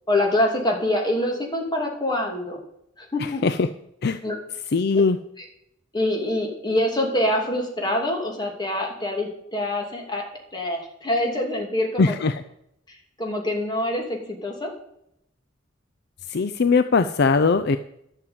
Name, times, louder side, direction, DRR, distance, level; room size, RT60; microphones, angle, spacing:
voice 1, 0.1-2.6 3.0-3.4 4.2-4.3 5.9-10.2 10.5-12.2 12.9-14.7, left 1 dB, 20° left, 1 dB, 2.7 m, -25 dB
voice 2, 3.2-3.7 4.0-4.2 4.7-5.2 12.0-12.4 16.3-17.8, left 4 dB, 55° left, 11 dB, 0.5 m, -20 dB
11.5 x 6.7 x 8.7 m, 0.77 s
head